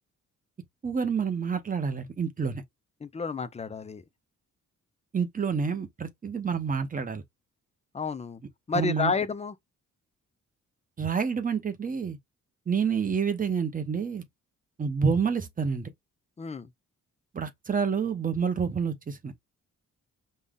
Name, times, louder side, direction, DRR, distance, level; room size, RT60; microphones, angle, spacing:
voice 1, 0.8-2.6 5.1-7.2 8.7-9.1 11.0-12.2 12.7-14.2 14.8-15.9 17.3-19.3, right 6 dB, 25° right, 0.8 m, -28 dB
voice 2, 3.0-4.0 7.9-8.4 8.7-9.5 16.4-16.7, left 5 dB, 20° left, 0.4 m, -30 dB
5.4 x 2.3 x 3.6 m
wide cardioid pair, 175°, 32 cm